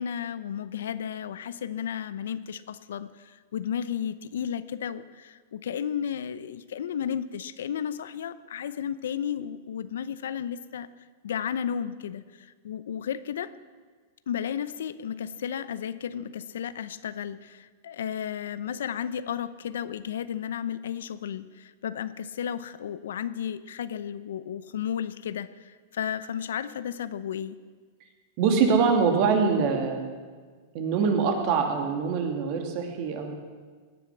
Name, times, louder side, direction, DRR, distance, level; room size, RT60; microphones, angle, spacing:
voice 1, 0.0-10.9 11.2-13.5 14.3-27.6, left 8 dB, 85° left, 15 dB, 0.7 m, -33 dB
voice 2, 28.4-30.1 30.7-33.3, right 5 dB, 45° right, 4 dB, 2.6 m, -24 dB
17.5 x 10.0 x 7.3 m, 1.5 s
supercardioid pair, 145°, 0 cm